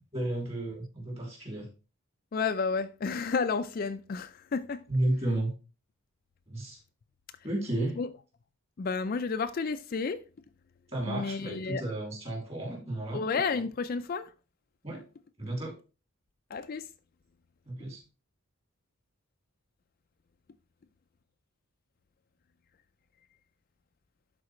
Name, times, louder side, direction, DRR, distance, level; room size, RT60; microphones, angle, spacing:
voice 1, 0.1-1.7 4.9-5.5 6.5-6.8 7.4-8.0 10.9-13.2 14.8-15.0 15.4-15.8 17.7-18.0, right 1 dB, 30° right, 2.8 m, -32 dB
voice 2, 2.3-4.8 8.0-8.1 8.8-10.2 11.1-11.8 13.1-14.3 16.5-16.9, left 5 dB, 40° left, 0.3 m, -31 dB
11.5 x 4.1 x 3.1 m
head